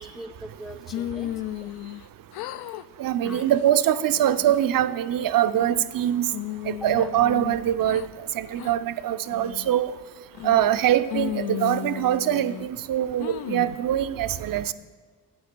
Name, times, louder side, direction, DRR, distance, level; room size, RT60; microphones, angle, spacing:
voice 1, 0.0-1.8 3.2-3.5 6.8-7.1, equal, ahead, 7 dB, 0.5 m, -42 dB
sound 1, 0.9-2.1 2.3-2.8 3.2-3.6 4.1-4.7 5.2-5.9 6.3-8.1 8.6-8.7 9.3-9.7 10.3-10.8 11.1-12.7 13.2-13.8, left 14 dB, 60° left, 0.5 m, -34 dB
voice 2, 3.0-6.3 6.7-8.0 8.3-9.9 10.4-14.7, right 11 dB, 50° right, 14 dB, 0.6 m, -23 dB
9.4 x 8.4 x 4.5 m, 1.6 s
hypercardioid pair, 50°, 44 cm